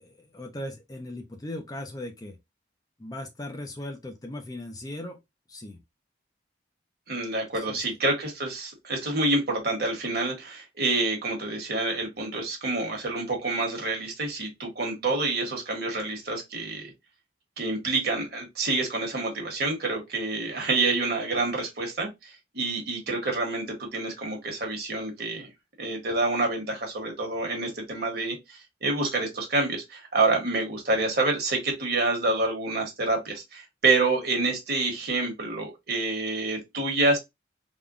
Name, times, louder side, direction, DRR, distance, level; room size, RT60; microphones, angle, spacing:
voice 1, 0.0-2.4 3.0-5.2 5.5-5.8 7.5-7.8, left 1 dB, 20° left, 0.4 m, -38 dB
voice 2, 7.1-16.9 17.6-25.5 25.8-37.2, right 2 dB, 55° right, 1.2 m, -27 dB
3.5 x 2.2 x 2.4 m
head